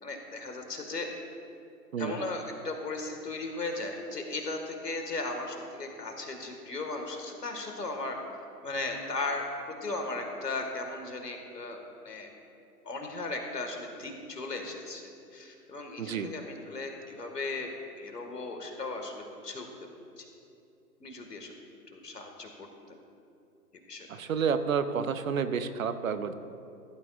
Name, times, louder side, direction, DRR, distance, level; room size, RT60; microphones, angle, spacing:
voice 1, 0.0-1.1 2.0-8.2 8.6-11.8 12.0-12.3 12.8-15.0 15.3-17.7 18.0-19.7 20.2-20.3 21.0-21.5 21.9-22.7 23.9-24.1, left 3 dB, 75° left, 3 dB, 1.9 m, -36 dB
voice 2, 16.0-16.3 24.1-26.3, right 6 dB, 55° right, 11 dB, 0.8 m, -30 dB
16.0 x 12.0 x 2.5 m, 2.6 s
figure-of-eight pair, 125°, 48 cm